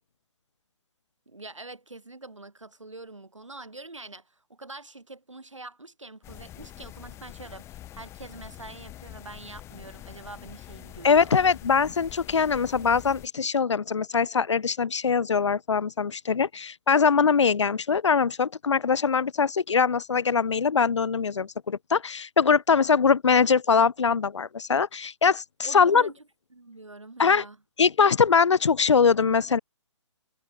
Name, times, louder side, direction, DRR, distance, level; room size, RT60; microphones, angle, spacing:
voice 1, 1.3-11.4 25.6-26.2 26.5-27.6, right 2 dB, 85° right, 3.0 m, -44 dB
sound 1, 6.2-13.3, left 14 dB, 15° left, 2.9 m, -45 dB
voice 2, 11.0-26.1 27.2-27.4 27.8-29.6, left 6 dB, 70° left, 0.6 m, -22 dB
figure-of-eight pair, 135°, 16 cm